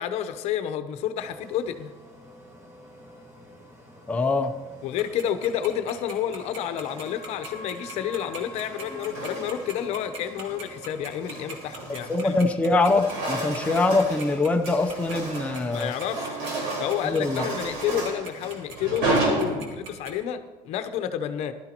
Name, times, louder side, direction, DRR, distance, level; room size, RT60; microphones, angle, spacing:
voice 1, 0.0-1.9 4.8-12.4 15.7-16.4 16.8-21.5, left 9 dB, 60° left, 9 dB, 0.8 m, -30 dB
sound 1, 1.2-12.0, equal, 20° right, 1.9 m, -46 dB
voice 2, 4.1-4.5 12.1-15.9 17.0-17.5, left 3 dB, 10° left, 3 dB, 0.6 m, -23 dB
Tick-tock, 5.0-20.1, right 3 dB, 55° right, 2.2 m, -40 dB
sound 2, 6.7-7.2 8.3-9.8 10.3-10.6 11.0-12.5 12.7-20.1, right 2 dB, 85° right, 4.4 m, -32 dB
16.0 x 12.0 x 3.0 m, 1.2 s
cardioid pair, 130°, 13 cm